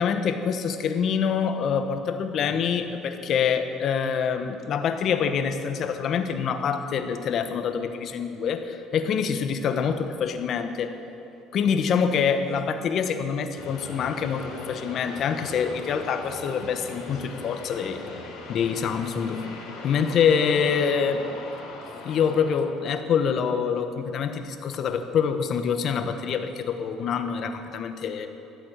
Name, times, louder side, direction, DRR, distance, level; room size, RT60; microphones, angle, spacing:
voice 1, 0.0-10.9 11.5-18.0 18.5-19.4 19.8-21.2 22.0-28.3, left 7 dB, 50° left, 7 dB, 1.0 m, -25 dB
sound 1, 13.6-23.8, left 3 dB, 85° left, 3.1 m, -40 dB
12.5 x 8.6 x 7.9 m, 2.8 s
cardioid pair, 110°, 0 cm